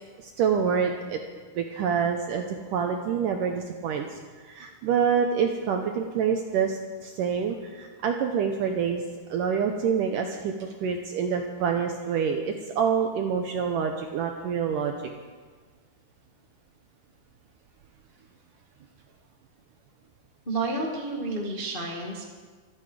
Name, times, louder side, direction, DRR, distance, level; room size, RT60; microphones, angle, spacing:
voice 1, 0.2-1.2 1.6-4.2 4.5-9.0 9.3-14.9, right 7 dB, 75° right, 4 dB, 2.0 m, -27 dB
voice 2, 20.4-22.2, right 2 dB, 50° left, -2 dB, 0.6 m, -30 dB
26.5 x 10.5 x 5.0 m, 1.5 s
omnidirectional pair, 4.8 m